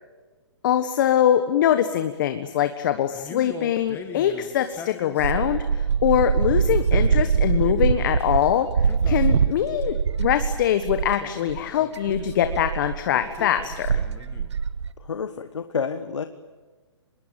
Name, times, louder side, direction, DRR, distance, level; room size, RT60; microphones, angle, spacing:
voice 1, 0.6-14.0, left 10 dB, 45° left, 9 dB, 1.4 m, -23 dB
Male speech man speaking, 3.1-5.7 6.7-8.4 8.8-10.1 11.0-12.5 13.1-14.6, left 7 dB, 15° left, 2.1 m, -42 dB
sound 1, 5.2-11.2 11.5-11.6 11.9-14.9, right 6 dB, 75° right, 1.1 m, -23 dB
voice 2, 15.0-16.2, left 6 dB, 85° left, 9 dB, 1.5 m, -29 dB
25.5 x 21.5 x 9.1 m, 1.3 s
hypercardioid pair, 150°, 15 cm